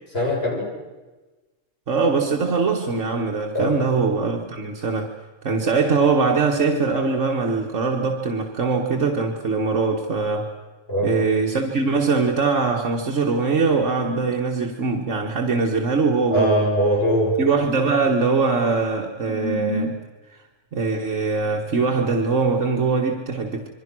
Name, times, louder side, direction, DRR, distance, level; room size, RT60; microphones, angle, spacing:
voice 1, 0.1-0.7 3.5-3.8 10.9-11.2 16.3-17.4, equal, 50° left, -3 dB, 7.9 m, -21 dB
voice 2, 1.9-5.1 5.4-10.5 11.0-16.7 17.4-20.0 20.3-20.4 20.7-23.7, right 4 dB, 70° right, 1 dB, 1.9 m, -22 dB
27.5 x 23.0 x 6.2 m, 1.2 s
omnidirectional pair, 1.3 m